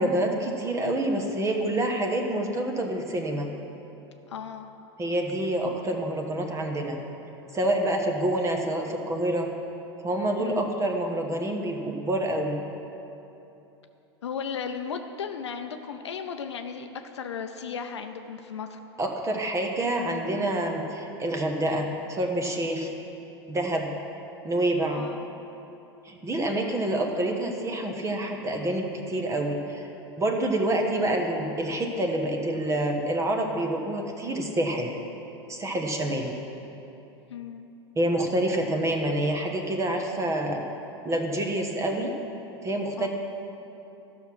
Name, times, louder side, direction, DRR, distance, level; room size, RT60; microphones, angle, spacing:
voice 1, 0.0-3.5 5.0-7.0 7.5-9.5 10.0-12.6 19.0-22.9 23.5-24.0 24.4-25.1 26.0-29.9 30.2-34.9 35.5-36.3 38.0-40.6 41.0-42.1 42.6-43.1, right 1 dB, 20° right, 2 dB, 1.2 m, -27 dB
voice 2, 4.3-4.7 10.4-10.7 14.2-16.9 17.1-18.8 24.9-25.3 26.5-26.8 37.3-37.7 43.0-43.1, left 6 dB, 85° left, 6 dB, 0.6 m, -35 dB
12.5 x 6.0 x 6.0 m, 2.9 s
hypercardioid pair, 95°, 14 cm